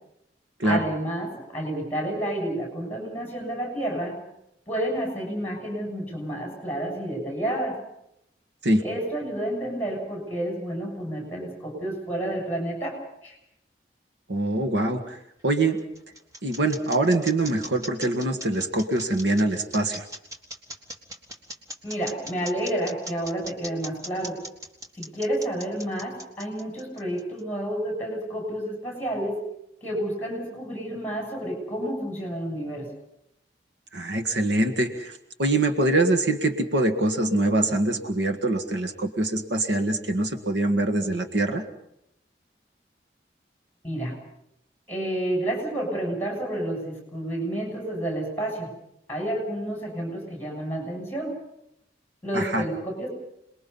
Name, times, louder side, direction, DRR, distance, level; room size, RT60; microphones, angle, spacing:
voice 1, 0.6-4.2 4.7-7.8 8.8-13.0 13.2-13.4 21.8-24.4 25.0-29.4 29.8-32.9 43.8-44.2 44.9-48.7 49.1-51.3 52.2-53.1, right 1 dB, 10° left, 1 dB, 7.0 m, -30 dB
voice 2, 14.3-15.2 15.4-15.8 16.4-20.1 33.9-41.6 52.3-52.7, right 2 dB, 75° right, 6 dB, 1.8 m, -24 dB
sound 1, 15.4-27.4, equal, 20° right, 2.0 m, -39 dB
28.0 x 21.0 x 5.5 m, 0.79 s
head